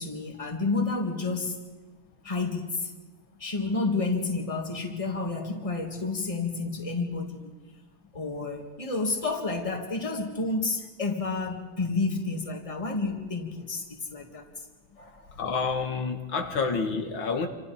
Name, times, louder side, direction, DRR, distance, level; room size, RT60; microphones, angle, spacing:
voice 1, 0.0-1.6 2.2-2.9 3.4-7.5 8.1-14.5 15.0-15.2, left 3 dB, 15° left, 3 dB, 2.1 m, -30 dB
voice 2, 15.4-17.5, left 4 dB, 75° left, 5 dB, 2.4 m, -28 dB
28.5 x 26.5 x 4.3 m, 1.3 s
omnidirectional pair, 2.2 m